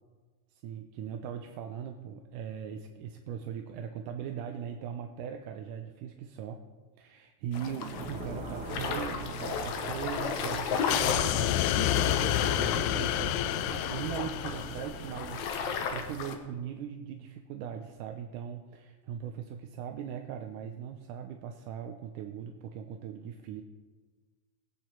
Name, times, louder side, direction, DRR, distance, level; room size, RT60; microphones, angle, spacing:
voice 1, 0.5-6.6 7.0-23.6, right 8 dB, 80° right, 5 dB, 2.2 m, -40 dB
sound 1, 7.5-16.3, left 6 dB, 65° left, 2.2 m, -35 dB
sound 2, 7.9-16.1, right 2 dB, 55° right, 3.7 m, -42 dB
sound 3, 10.9-15.3, left 13 dB, 90° left, 1.7 m, -29 dB
21.0 x 8.6 x 4.6 m, 1.4 s
omnidirectional pair, 3.9 m